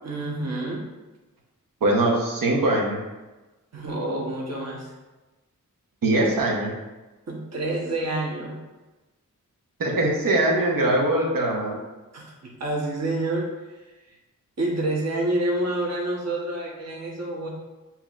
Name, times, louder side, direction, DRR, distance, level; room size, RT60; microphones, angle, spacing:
voice 1, 0.0-0.8 3.7-4.9 7.3-8.6 12.1-13.5 14.6-17.5, right 2 dB, 50° right, -3 dB, 1.0 m, -28 dB
voice 2, 1.8-3.0 6.0-6.7 9.8-11.8, right 1 dB, 75° right, -1 dB, 1.0 m, -22 dB
7.1 x 2.9 x 2.4 m, 1.1 s
wide cardioid pair, 75°, 33 cm